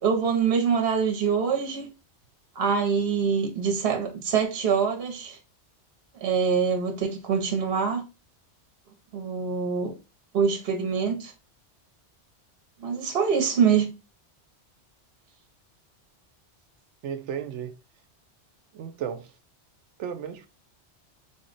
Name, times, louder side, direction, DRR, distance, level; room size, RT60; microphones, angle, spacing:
voice 1, 0.0-1.9 2.6-5.4 6.2-8.1 9.1-10.0 10.3-11.3 12.8-13.9, right 6 dB, 60° right, 0.9 m, -24 dB
voice 2, 17.0-17.8 18.7-19.3 20.0-20.5, right 8 dB, 90° right, 0.9 m, -34 dB
3.8 x 2.1 x 3.9 m
omnidirectional pair, 1.2 m